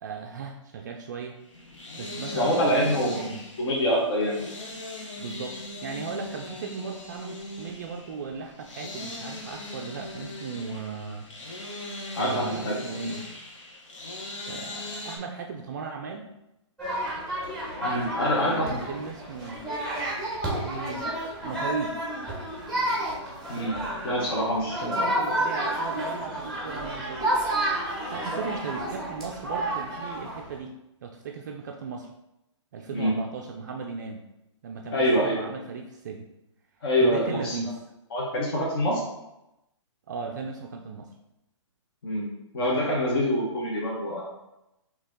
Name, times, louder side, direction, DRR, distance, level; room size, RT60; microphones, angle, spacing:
voice 1, 0.0-1.4 2.0-3.4 5.2-11.3 12.2-13.3 14.5-16.3 18.3-19.6 20.6-21.1 21.4-22.0 24.8-27.3 28.1-32.1 32.7-34.3 34.6-36.3 37.0-37.8 40.1-41.1, right 5 dB, 40° right, 2 dB, 0.4 m, -36 dB
sound 1, 1.4-15.2, left 1 dB, 85° left, 1.2 m, -40 dB
voice 2, 2.3-3.2 3.6-4.4 12.1-12.7 17.8-18.8 23.5-23.8 24.0-25.1 32.9-33.1 34.9-35.4 36.8-37.6 38.1-39.0 42.0-42.3 42.5-44.2, equal, 50° left, -5 dB, 1.1 m, -25 dB
sound 2, 16.8-30.6, right 1 dB, 5° left, 0.9 m, -30 dB
4.3 x 2.9 x 3.7 m, 0.89 s
hypercardioid pair, 160°, 16 cm